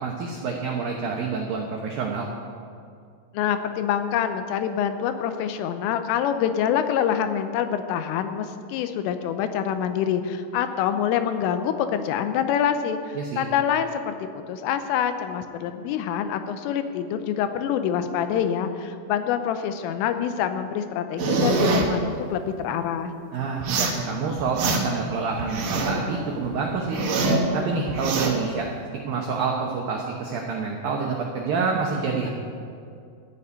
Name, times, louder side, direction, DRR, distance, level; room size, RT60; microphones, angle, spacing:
voice 1, 0.0-2.3 13.2-13.5 23.3-27.0 27.5-28.7 29.1-32.3, right 5 dB, 90° right, 0 dB, 2.0 m, -27 dB
voice 2, 3.3-23.1, left 9 dB, 85° left, 8 dB, 3.3 m, -26 dB
sound 1, 21.2-21.9 23.6-24.0 24.4-25.0 25.4-26.0 26.4-27.5 27.9-28.3, right 3 dB, 65° right, 2.1 m, -24 dB
14.0 x 6.8 x 9.6 m, 2.4 s
omnidirectional pair, 5.8 m